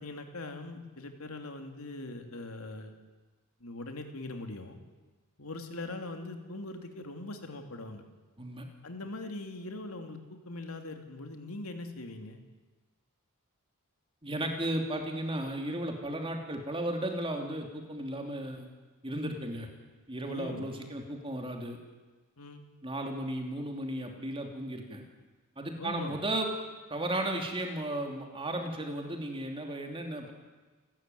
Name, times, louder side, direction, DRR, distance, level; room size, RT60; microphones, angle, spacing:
voice 1, 0.0-2.9 3.6-4.8 5.4-8.0 8.8-10.2 10.4-12.4 20.3-20.9 22.4-22.6 25.8-26.2, left 2 dB, 70° left, 5 dB, 3.0 m, -41 dB
voice 2, 14.2-18.7 19.0-19.7 20.1-21.8 22.8-25.0 25.6-26.5 26.9-30.3, right 1 dB, 25° right, 3 dB, 2.9 m, -35 dB
28.5 x 13.5 x 9.3 m, 1.3 s
head